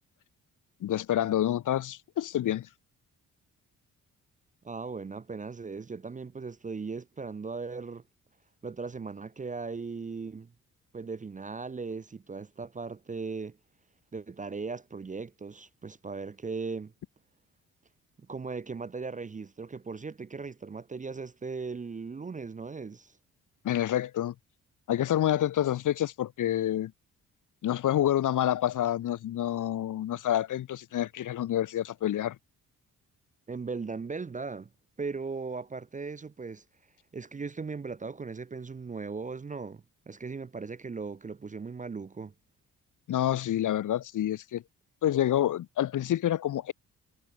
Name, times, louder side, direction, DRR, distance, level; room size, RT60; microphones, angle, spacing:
voice 1, 0.8-2.7 23.6-24.3 24.9-26.9 27.6-32.4 43.1-44.6 45.0-46.7, left 12 dB, 55° left, 0.7 m, -28 dB
voice 2, 4.6-8.0 8.6-10.5 10.9-13.6 14.1-16.9 18.2-23.1 33.5-34.7 35.0-36.6 37.1-42.3, right 4 dB, 20° right, 0.5 m, -38 dB
supercardioid pair, 55°, 37 cm